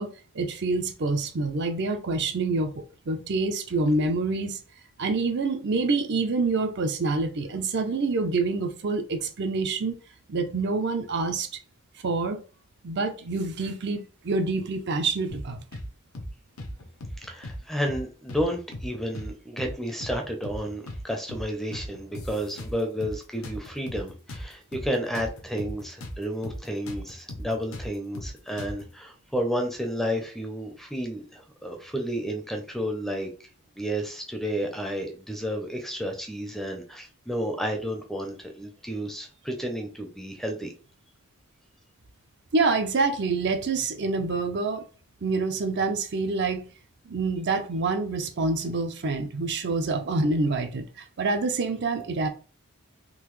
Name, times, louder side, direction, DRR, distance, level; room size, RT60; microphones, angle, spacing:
voice 1, 0.0-4.6 5.0-10.0 10.3-11.5 12.0-12.4 12.8-15.6 42.5-44.8 45.2-46.7 47.1-52.3, right 3 dB, 55° right, 0.5 m, -27 dB
sound 1, 15.3-15.9 16.1-16.3 16.6-17.6 17.9-18.0 18.3-19.3 19.6-19.7 20.0-21.0 21.3-21.5 21.7-23.2 23.4-26.2 26.4-26.6 26.9-28.9, left 1 dB, 80° left, 0.9 m, -37 dB
voice 2, 17.2-33.3 33.8-40.7, equal, ahead, 0.6 m, -31 dB
3.8 x 2.8 x 3.1 m
head